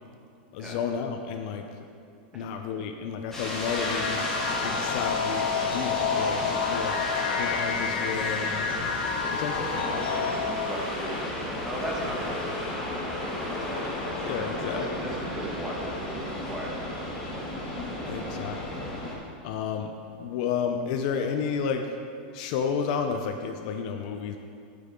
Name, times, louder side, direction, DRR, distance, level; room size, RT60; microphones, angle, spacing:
voice 1, 0.5-1.6 2.3-7.0 7.4-8.9 9.3-9.9 14.2-14.9 18.1-18.9 19.4-21.9 22.3-24.4, left 6 dB, 45° left, 5 dB, 0.7 m, -32 dB
sound 1, 3.3-10.9, left 6 dB, 75° left, 1.1 m, -29 dB
sound 2, 3.3-19.1, left 1 dB, 5° left, 2.2 m, -33 dB
voice 2, 9.6-13.2 13.7-13.8 14.4-16.2 16.5-17.1, right 1 dB, 10° right, -3 dB, 1.7 m, -38 dB
13.5 x 9.5 x 3.8 m, 2.4 s
supercardioid pair, 165°, 6 cm